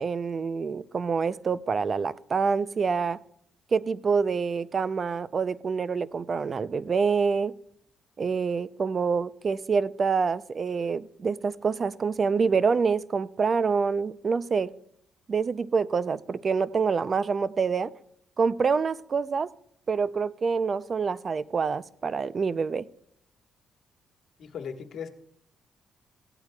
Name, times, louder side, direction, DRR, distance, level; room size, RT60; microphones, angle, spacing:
voice 1, 0.0-3.2 3.7-7.5 8.2-14.7 15.3-17.9 18.4-19.5 19.9-22.9, right 5 dB, 40° right, 0.4 m, -26 dB
voice 2, 24.4-25.1, left 7 dB, 65° left, 1.4 m, -37 dB
17.0 x 11.5 x 2.3 m
cardioid pair, 90°, 0 cm